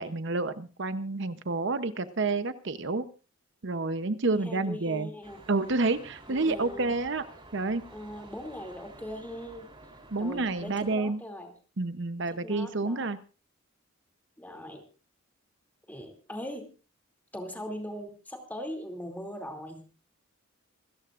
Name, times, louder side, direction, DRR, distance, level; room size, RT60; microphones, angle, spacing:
voice 1, 0.0-3.0 3.6-5.1 5.5-7.3 7.5-7.8 10.1-11.2 11.8-13.2, right 3 dB, 60° right, 12 dB, 0.8 m, -29 dB
voice 2, 4.2-5.4 6.4-6.9 7.9-9.7 10.2-11.5 12.3-13.1 14.4-14.8 15.9-16.7 17.3-19.8, equal, 10° left, 3 dB, 2.6 m, -40 dB
sound 1, 5.2-11.0, right 2 dB, 25° right, 3.5 m, -51 dB
27.0 x 13.5 x 2.5 m, 0.34 s
head